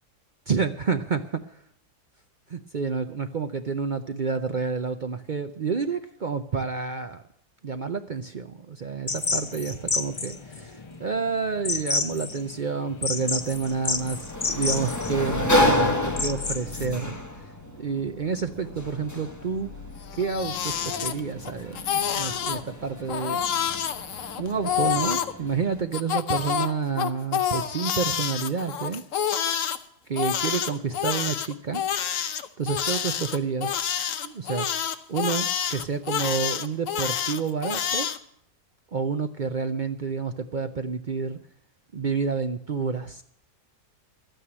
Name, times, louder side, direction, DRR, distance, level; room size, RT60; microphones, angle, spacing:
voice 1, 0.5-1.4 2.5-7.2 7.6-17.2 17.8-19.7 20.2-23.4 24.4-29.0 30.1-31.8 32.6-33.9 34.2-34.7 35.1-38.1 38.9-41.4 41.9-43.2, right 5 dB, 65° right, 7 dB, 0.5 m, -29 dB
sound 1, 9.1-16.9, left 3 dB, 30° left, 0.5 m, -30 dB
Sliding door, 13.2-25.8, left 1 dB, 10° left, 1.4 m, -30 dB
Crying sobbing, 20.0-21.5 21.7-22.6 23.1-25.3 25.9-29.8 30.2-38.2, left 9 dB, 60° left, 1.1 m, -28 dB
12.5 x 9.2 x 8.6 m, 0.68 s
omnidirectional pair, 1.7 m